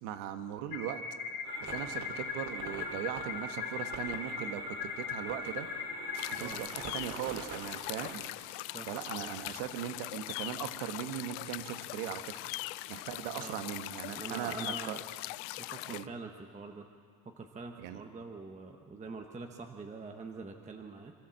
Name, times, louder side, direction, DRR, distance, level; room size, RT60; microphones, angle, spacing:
voice 1, 0.0-1.0 1.6-5.7 6.4-8.2 8.9-12.2 12.9-15.0 15.9-16.1 17.8-18.0, right 10 dB, 75° right, 8 dB, 1.5 m, -39 dB
sound 1, 0.7-6.5, left 5 dB, 50° left, 3.4 m, -39 dB
sound 2, 1.4-8.3, right 4 dB, 35° right, 2.4 m, -47 dB
sound 3, 6.1-16.1, left 20 dB, 70° left, 0.5 m, -41 dB
voice 2, 14.2-15.0 15.6-16.9 17.2-21.1, right 4 dB, 15° right, 3 dB, 0.9 m, -44 dB
26.0 x 14.0 x 7.6 m, 2.2 s
cardioid pair, 145°, 48 cm